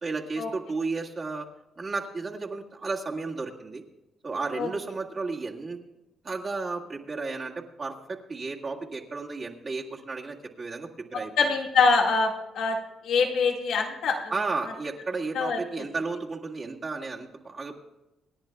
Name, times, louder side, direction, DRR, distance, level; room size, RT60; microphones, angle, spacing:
voice 1, 0.0-1.5 1.8-3.8 4.2-5.8 6.2-11.5 14.3-17.8, right 3 dB, 35° right, -2 dB, 1.9 m, -33 dB
voice 2, 11.4-12.8 13.0-14.3 15.4-15.6, left 4 dB, 75° left, 1 dB, 1.8 m, -24 dB
27.0 x 10.5 x 2.3 m, 1.0 s
cardioid pair, 90°, 0 cm